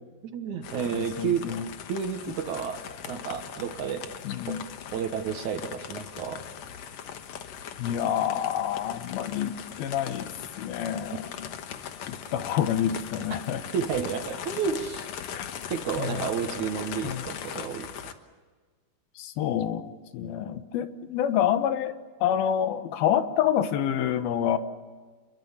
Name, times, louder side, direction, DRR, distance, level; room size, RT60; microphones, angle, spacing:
voice 1, 0.2-1.5 1.9-4.1 4.5-4.6 4.9-6.4 13.7-15.1 15.7-18.1, right 7 dB, 60° right, 7 dB, 2.5 m, -31 dB
sound 1, 0.6-18.1, left 8 dB, 60° left, 1.9 m, -40 dB
voice 2, 0.9-1.6 4.3-4.6 7.8-10.3 10.6-11.2 12.0-13.6 15.3-15.5 16.0-16.2 17.0-17.2 19.2-24.6, left 10 dB, 80° left, 10 dB, 3.0 m, -27 dB
27.5 x 22.5 x 7.2 m, 1.5 s
omnidirectional pair, 4.3 m